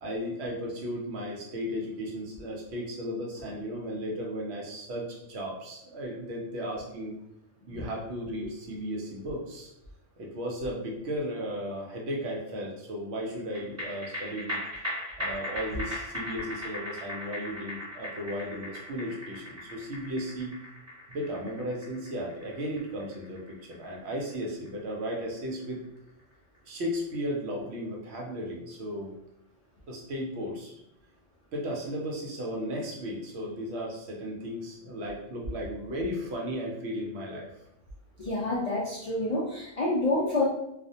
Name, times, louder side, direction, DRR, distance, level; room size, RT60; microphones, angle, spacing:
voice 1, 0.0-7.2 7.7-9.7 10.2-14.6 15.2-20.5 21.1-25.8 26.6-29.1 29.9-30.7 31.5-37.5, equal, 65° right, -1 dB, 0.8 m, -35 dB
sound 1, 13.5-26.2 26.5-26.6, left 1 dB, 15° right, 0.8 m, -39 dB
voice 2, 38.2-40.5, left 2 dB, 75° left, -5 dB, 0.3 m, -28 dB
2.4 x 2.1 x 2.7 m, 0.81 s
omnidirectional pair, 1.3 m